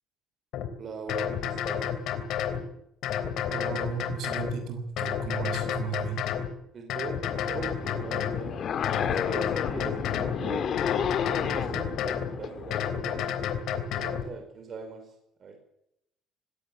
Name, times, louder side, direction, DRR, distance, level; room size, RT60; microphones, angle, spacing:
sound 1, 0.5-0.7 1.1-2.6 3.0-4.6 5.0-6.5 6.9-8.4 8.8-10.4 10.8-12.3 12.7-14.2, left 9 dB, 70° left, 3.3 m, -30 dB
voice 1, 0.8-1.8 6.7-8.6 8.9-10.8 11.2-13.3 13.7-15.1 15.4-15.6, right 5 dB, 40° right, 4 dB, 4.9 m, -40 dB
voice 2, 3.5-6.2, right 6 dB, 65° right, 7 dB, 6.4 m, -35 dB
sound 2, 7.3-12.9, left 8 dB, 50° left, 2.1 m, -32 dB
20.5 x 17.0 x 7.6 m, 0.80 s
cardioid pair, 130°, 0 cm